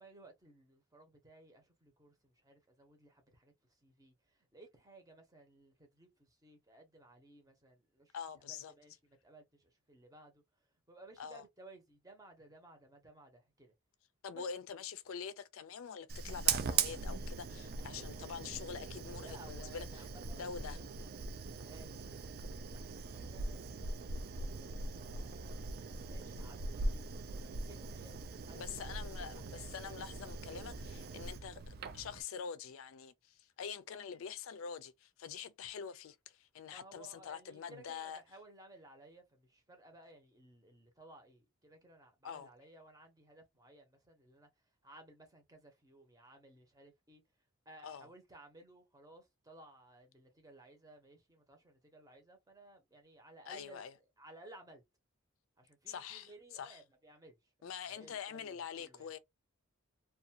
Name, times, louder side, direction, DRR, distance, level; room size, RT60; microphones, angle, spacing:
voice 1, 0.0-13.7 14.3-14.4 19.2-25.7 26.1-29.7 36.7-47.2 47.6-53.9 54.2-54.8 55.6-59.1, right 2 dB, 15° right, 0.8 m, -59 dB
voice 2, 8.1-8.7 11.2-11.4 14.2-20.1 20.4-20.8 28.5-38.2 42.2-42.5 47.8-48.1 53.5-53.9 55.9-56.8 57.6-59.2, left 7 dB, 70° left, 0.4 m, -45 dB
Fire, 16.1-32.2, right 5 dB, 45° right, 0.3 m, -40 dB
2.5 x 2.3 x 2.7 m
head